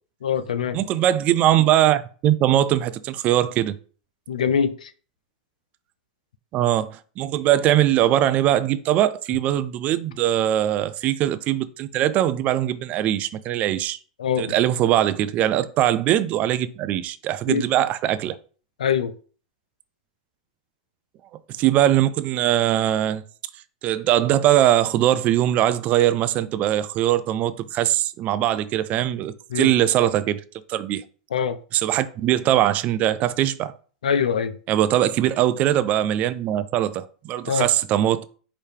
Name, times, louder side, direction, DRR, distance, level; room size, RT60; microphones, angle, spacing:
voice 1, 0.2-0.8 4.3-4.9 14.2-14.5 17.5-17.6 18.8-19.1 29.5-29.7 31.3-31.6 34.0-34.6 37.5-37.7, left 7 dB, 85° left, 0.4 m, -23 dB
voice 2, 0.7-3.7 6.5-14.0 14.4-18.4 21.6-23.2 23.8-30.4 30.7-31.0 31.7-33.7 34.7-38.2, right 12 dB, 40° right, 0.3 m, -21 dB
4.9 x 2.7 x 3.3 m
hypercardioid pair, 110°, 4 cm